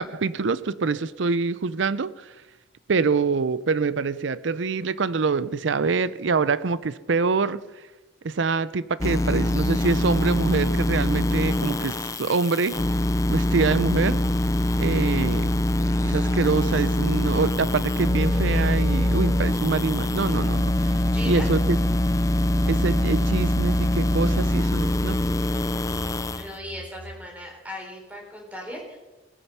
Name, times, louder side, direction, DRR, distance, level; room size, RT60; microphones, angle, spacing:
voice 1, 0.0-2.3 2.9-7.6 8.2-12.8 13.3-14.2 14.8-15.5 16.0-21.0 21.3-21.8 22.7-25.2, right 4 dB, 70° right, 17 dB, 0.5 m, -25 dB
sound 1, 9.0-26.5, left 1 dB, 15° left, 0.5 m, -23 dB
voice 2, 21.0-21.5 26.3-29.0, equal, 10° right, 0 dB, 3.6 m, -38 dB
sound 2, 25.8-27.1, left 1 dB, 35° left, 1.4 m, -45 dB
19.0 x 9.1 x 5.6 m, 1.1 s
head